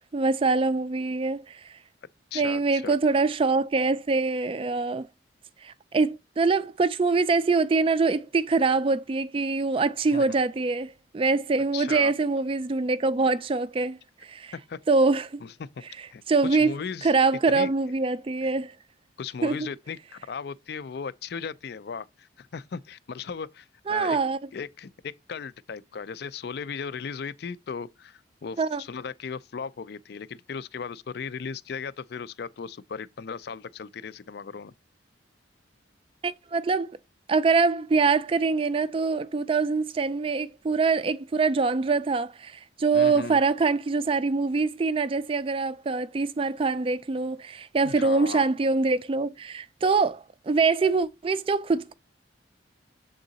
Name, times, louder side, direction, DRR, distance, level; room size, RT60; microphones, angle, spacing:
voice 1, 0.1-1.7 2.3-5.1 5.6-14.5 14.9-15.4 16.3-16.7 17.0-18.7 19.4-19.6 23.9-24.4 28.6-28.8 36.2-37.0 37.3-51.9, right 4 dB, 30° right, 0.3 m, -24 dB
voice 2, 2.3-3.0 10.1-10.4 11.7-12.1 14.5-14.8 15.4-15.7 16.1-17.1 17.5-17.7 19.2-24.2 24.5-34.7 42.9-43.4 47.8-48.5, left 6 dB, 55° left, 0.4 m, -37 dB
7.2 x 3.8 x 3.9 m
head